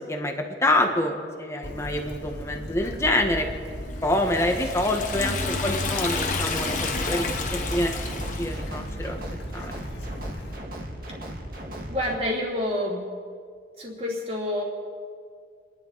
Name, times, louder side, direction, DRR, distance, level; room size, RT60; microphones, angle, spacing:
voice 1, 0.6-3.5 4.0-7.3 7.7-7.9 8.3-9.2 9.6-9.7, left 1 dB, 15° left, 3 dB, 1.5 m, -26 dB
Bird / Stream, 1.6-10.6, equal, 85° left, 2.1 m, -36 dB
Liquid, 4.1-8.7, left 3 dB, 45° left, 1.4 m, -30 dB
voice 2, 5.2-5.6 11.6-13.1 13.8-14.6, left 1 dB, 35° right, -2 dB, 3.2 m, -29 dB
sound 1, 6.5-12.1, right 1 dB, 55° right, 2.0 m, -37 dB
30.0 x 11.0 x 4.2 m, 2.1 s
head